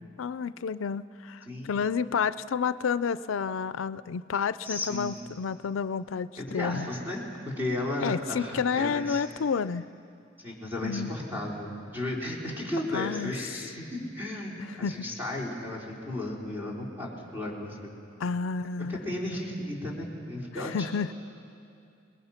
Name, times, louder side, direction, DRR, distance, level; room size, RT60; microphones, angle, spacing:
voice 1, 0.2-6.9 8.0-9.9 10.8-11.1 12.9-13.3 14.7-15.1 18.2-19.0 20.6-21.1, left 6 dB, 85° left, 15 dB, 0.4 m, -30 dB
voice 2, 1.5-1.8 4.6-5.2 6.4-7.2 7.6-9.2 10.4-17.9 18.9-20.9, left 1 dB, 10° right, -4 dB, 4.2 m, -34 dB
29.5 x 20.5 x 5.8 m, 2.6 s
head